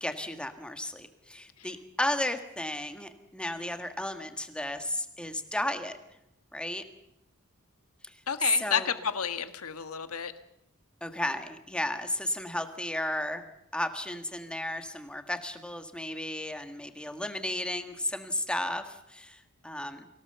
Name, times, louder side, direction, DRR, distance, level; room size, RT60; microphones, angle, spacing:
voice 1, 0.0-6.0 6.5-6.8 8.0-8.2 8.5-8.9 11.0-13.4 13.7-20.1, left 1 dB, 5° left, 8 dB, 1.5 m, -34 dB
voice 2, 8.3-10.3, left 7 dB, 80° left, 10 dB, 1.5 m, -31 dB
24.0 x 17.0 x 6.9 m, 0.82 s
head